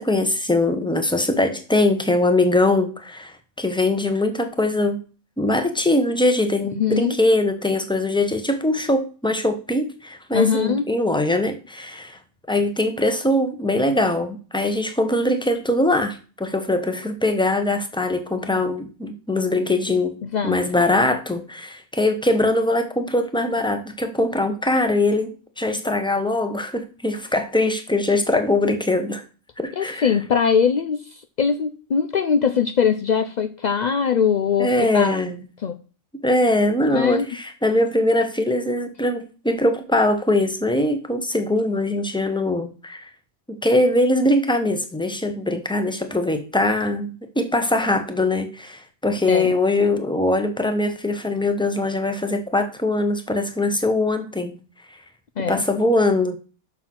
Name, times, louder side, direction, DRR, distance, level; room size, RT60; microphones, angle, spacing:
voice 1, 0.0-5.0 5.4-12.2 12.5-20.2 20.4-29.2 29.6-30.2 34.6-35.4 36.2-43.1 43.5-54.6 55.5-56.4, left 2 dB, 5° left, 7 dB, 0.9 m, -22 dB
voice 2, 6.8-7.2 10.3-10.8 20.2-20.6 29.8-35.2 35.6-35.8 36.9-37.3 49.3-49.5 55.4-55.6, left 7 dB, 70° left, 10 dB, 0.4 m, -21 dB
6.3 x 6.1 x 6.0 m, 0.36 s
omnidirectional pair, 1.4 m